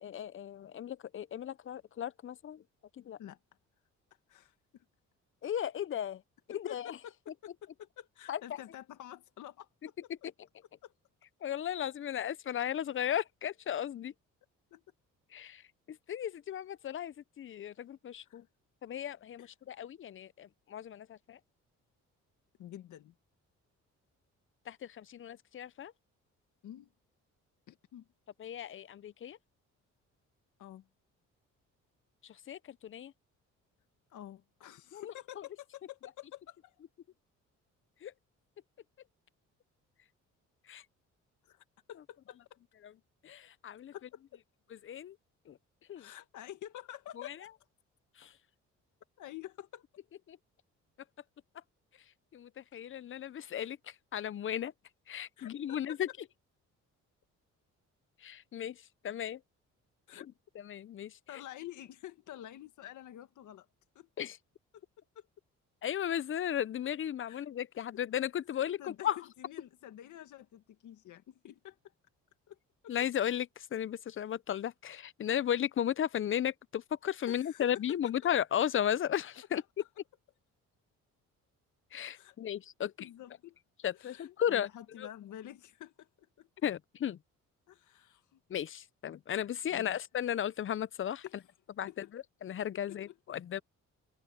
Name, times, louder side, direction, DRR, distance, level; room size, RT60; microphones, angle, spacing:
voice 1, 0.0-2.6 3.0-3.2 5.4-6.2 6.5-7.0 8.3-8.4 11.4-14.1 15.3-15.6 15.9-18.4 18.8-21.4 24.7-25.9 28.4-29.4 32.2-33.1 34.9-35.4 38.0-38.1 40.7-40.8 42.8-42.9 43.2-43.9 44.8-45.2 45.5-45.6 45.9-46.1 47.2-47.4 48.2-48.3 50.3-50.4 52.3-54.7 55.1-56.1 58.2-59.4 60.6-61.2 64.2-64.3 65.8-69.2 72.9-79.6 81.9-83.1 83.8-84.7 85.0-85.1 86.6-87.2 88.5-91.2 91.8-93.6, left 10 dB, 45° left, 0.6 m, -35 dB
voice 2, 4.3-4.9 6.5-9.9 10.8-10.9 14.7-14.8 18.3-18.4 19.4-19.5 22.6-23.1 26.6-26.9 27.7-28.1 30.6-30.9 34.1-36.7 41.4-42.4 43.9-44.4 46.0-47.5 49.2-49.8 55.4-56.0 60.1-60.3 61.3-63.7 64.0-64.3 65.2-65.3 67.2-67.5 68.8-71.8 72.5-72.6 72.8-72.9 77.3-77.7 79.8-79.9 82.1-82.4 82.8-83.6 83.9-86.1 86.4-86.5 87.7-88.4 89.7-90.0 91.2-91.4 91.9-92.0 92.9-93.2, left 12 dB, 75° left, 2.0 m, -49 dB
open air
cardioid pair, 90°, 30 cm